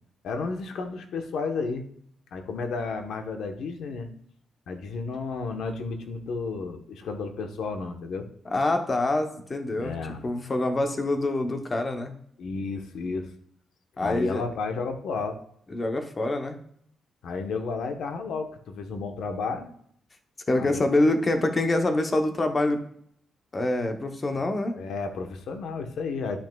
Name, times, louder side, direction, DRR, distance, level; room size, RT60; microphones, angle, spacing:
voice 1, 0.2-1.8 2.3-4.1 4.7-8.3 9.8-10.2 12.4-13.3 14.0-15.4 17.2-19.7 20.6-20.8 24.7-26.4, left 4 dB, 80° left, 6 dB, 1.0 m, -32 dB
voice 2, 8.5-9.9 10.2-12.1 14.0-14.4 15.7-16.6 20.5-22.8 23.5-24.8, left 2 dB, 25° left, 5 dB, 0.8 m, -25 dB
11.0 x 6.2 x 2.3 m, 0.66 s
cardioid pair, 140°, 0 cm